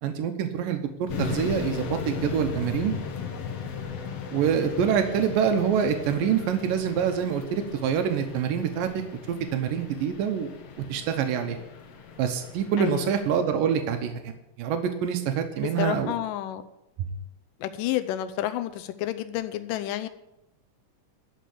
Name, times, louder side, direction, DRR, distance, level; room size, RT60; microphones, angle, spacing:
voice 1, 0.0-2.9 4.3-8.9 9.3-10.5 10.9-11.6 12.2-14.1 14.6-16.1 17.0-17.1, right 8 dB, 90° right, 6 dB, 2.6 m, -26 dB
sound 1, 1.1-13.4, left 6 dB, 60° left, 1.8 m, -37 dB
voice 2, 12.8-13.1 15.6-16.6 17.6-20.1, left 13 dB, 80° left, 11 dB, 2.4 m, -30 dB
13.0 x 5.7 x 8.4 m, 0.88 s
omnidirectional pair, 3.8 m